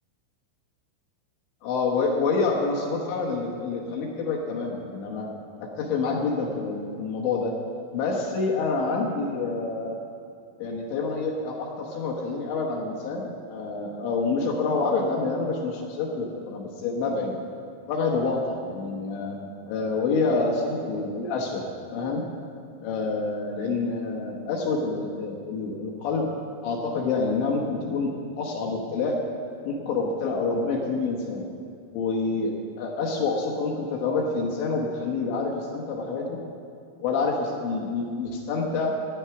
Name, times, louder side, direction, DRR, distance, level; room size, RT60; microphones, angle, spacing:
voice 1, 1.6-5.3 5.6-7.5 7.9-10.0 10.6-17.3 17.9-19.4 19.7-22.2 22.8-26.3 26.6-29.2 29.6-31.5 31.9-36.4 37.0-38.9, left 4 dB, 75° left, 0 dB, 3.4 m, -27 dB
14.5 x 9.8 x 5.8 m, 2.4 s
omnidirectional pair, 5.4 m